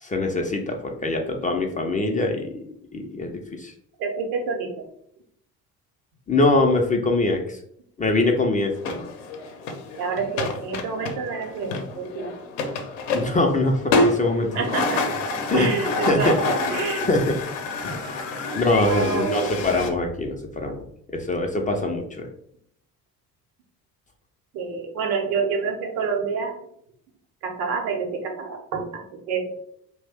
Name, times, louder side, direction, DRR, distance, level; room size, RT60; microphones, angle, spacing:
voice 1, 0.0-2.7 2.9-3.7 6.3-7.6 8.0-9.1 13.1-14.7 15.5-15.8 16.1-16.3 17.1-17.4 17.8-18.0 18.5-20.8 21.1-22.3, left 2 dB, 20° left, 2 dB, 0.4 m, -23 dB
voice 2, 4.0-4.9 10.0-12.3 14.5-15.2 15.5-17.2 18.5-18.6 18.9-19.8 24.5-26.6 27.4-29.5, right 5 dB, 80° right, 2 dB, 0.7 m, -28 dB
ice scoop and blending, 8.8-19.9, left 3 dB, 70° left, 0.7 m, -28 dB
2.4 x 2.1 x 3.4 m, 0.69 s
hypercardioid pair, 55°, 45 cm